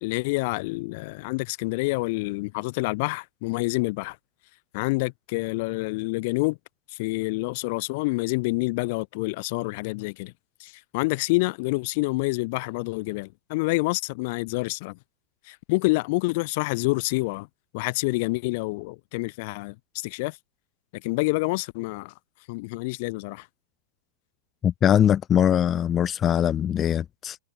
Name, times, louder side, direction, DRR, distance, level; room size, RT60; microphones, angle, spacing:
voice 1, 0.0-4.2 4.7-6.6 6.9-10.3 10.6-15.0 15.4-17.5 17.7-20.4 20.9-22.1 22.5-23.5, left 25 dB, 50° left, 1.6 m, -27 dB
voice 2, 24.6-27.4, left 9 dB, 25° left, 1.4 m, -21 dB
hypercardioid pair, 115°, 0 cm